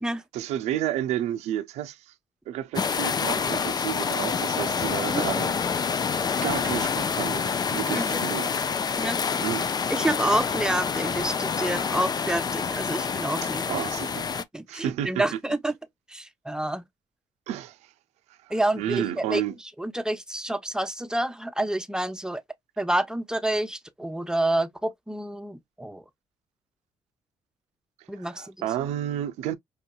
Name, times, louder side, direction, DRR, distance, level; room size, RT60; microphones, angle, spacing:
voice 1, 0.3-2.1 2.5-5.6 6.4-8.5 9.4-9.7 13.4-14.3 14.7-15.2 17.5-17.9 18.4-19.5 28.1-29.5, right 11 dB, 80° right, 0.5 m, -31 dB
sound 1, 2.7-14.4, left 6 dB, 35° left, 0.5 m, -27 dB
voice 2, 9.9-13.6 14.5-15.7 16.1-16.8 18.5-19.4 19.8-22.4 22.8-26.0 28.1-28.7, right 1 dB, 5° right, 0.8 m, -28 dB
5.4 x 2.7 x 2.2 m
supercardioid pair, 55°, 11 cm